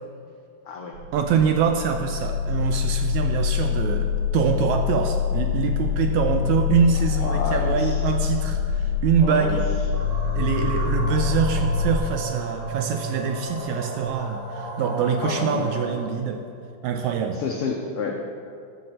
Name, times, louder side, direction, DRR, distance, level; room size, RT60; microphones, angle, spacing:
sound 1, 0.9-11.9, left 7 dB, 60° right, 1.9 m, -25 dB
voice 1, 1.1-9.7 10.4-16.4 16.8-17.4, right 7 dB, 75° right, 5 dB, 1.8 m, -24 dB
voice 2, 7.1-8.0 9.2-9.6 15.2-15.7 17.3-18.1, left 4 dB, 90° left, 1 dB, 1.3 m, -29 dB
sound 2, 9.9-16.1, right 4 dB, 40° right, 4.0 m, -32 dB
13.5 x 5.6 x 7.6 m, 2.4 s
omnidirectional pair, 3.7 m